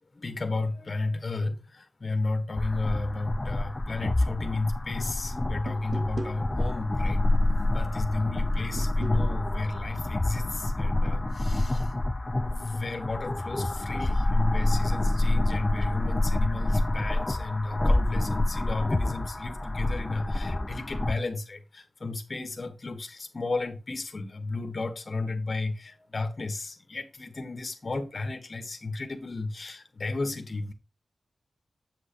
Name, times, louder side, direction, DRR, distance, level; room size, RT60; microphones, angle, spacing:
voice 1, 0.2-7.3 7.7-11.9 12.4-30.7, left 3 dB, 40° left, 1.3 m, -33 dB
sound 1, 2.6-21.1, left 2 dB, 20° left, 0.5 m, -27 dB
sound 2, 5.7-6.4 8.8-9.2, right 3 dB, 60° right, 1.2 m, -37 dB
7.7 x 7.4 x 2.9 m
wide cardioid pair, 125°, 0 cm